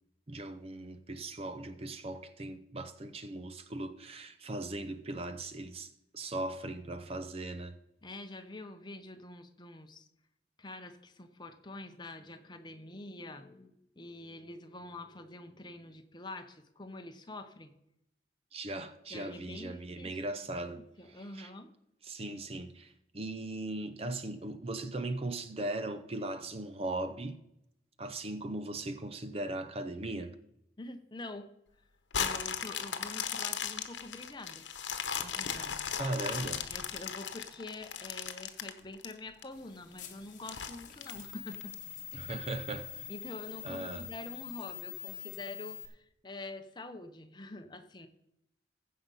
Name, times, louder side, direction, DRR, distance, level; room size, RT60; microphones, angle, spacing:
voice 1, 0.3-7.8 18.5-21.5 22.0-27.4 28.0-30.4 36.0-36.7 42.1-43.1 43.6-44.0, right 2 dB, 35° right, 0.6 m, -39 dB
voice 2, 8.0-10.1 10.6-17.7 19.1-20.3 20.7-21.7 30.8-31.5 32.2-34.7 35.2-35.9 36.7-41.7 43.1-48.1, left 2 dB, 25° left, 0.9 m, -46 dB
sound 1, 32.1-39.4 39.9-40.0 40.5-41.7 42.3-42.4, left 7 dB, 90° left, 1.0 m, -37 dB
sound 2, 39.5-45.8, left 10 dB, 45° left, 1.3 m, -45 dB
15.0 x 5.6 x 5.5 m
head